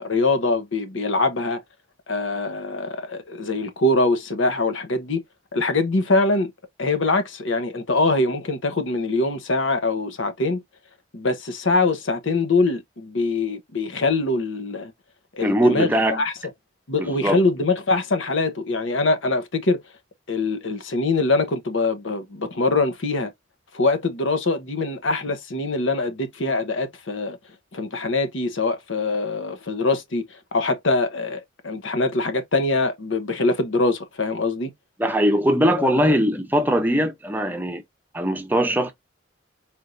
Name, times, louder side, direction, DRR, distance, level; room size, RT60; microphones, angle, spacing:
voice 1, 0.0-1.6 2.1-5.2 5.5-6.5 6.8-10.6 11.1-14.9 15.3-16.3 16.9-19.8 20.3-23.3 23.7-27.4 27.7-30.2 30.5-34.7 35.7-36.2, left 3 dB, 75° left, 0.9 m, -23 dB
voice 2, 15.4-16.2 17.0-17.4 35.0-37.8 38.1-38.9, equal, 10° right, 0.6 m, -21 dB
4.4 x 3.3 x 2.6 m
head